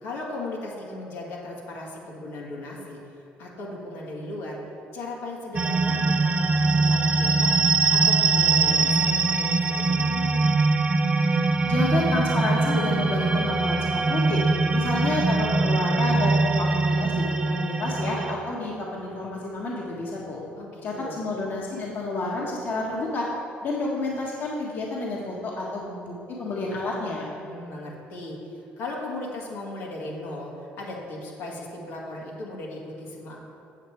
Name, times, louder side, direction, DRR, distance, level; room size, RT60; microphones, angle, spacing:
voice 1, 0.0-4.6 4.9-10.5 20.6-21.2 27.4-33.4, left 2 dB, 85° left, -4 dB, 2.1 m, -37 dB
sound 1, 5.5-18.3, right 3 dB, 25° right, 0.6 m, -22 dB
voice 2, 11.7-14.5 14.7-20.4 20.8-23.3 23.6-27.2, left 2 dB, 50° left, -4 dB, 1.4 m, -29 dB
8.1 x 7.2 x 4.6 m, 2.6 s
cardioid pair, 100°, 4 cm